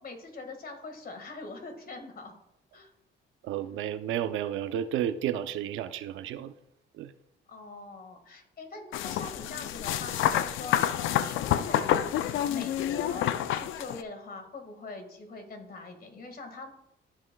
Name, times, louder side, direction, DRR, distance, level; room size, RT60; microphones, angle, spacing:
voice 1, 0.0-2.3 2.7-2.9 7.5-10.9 11.2-16.7, left 3 dB, 50° left, 1.8 m, -43 dB
voice 2, 3.4-6.5 6.9-7.1, right 10 dB, 85° right, 0.5 m, -32 dB
sound 1, 8.9-14.0, left 11 dB, 80° left, 0.4 m, -28 dB
14.0 x 5.4 x 2.3 m
cardioid pair, 90°, 20 cm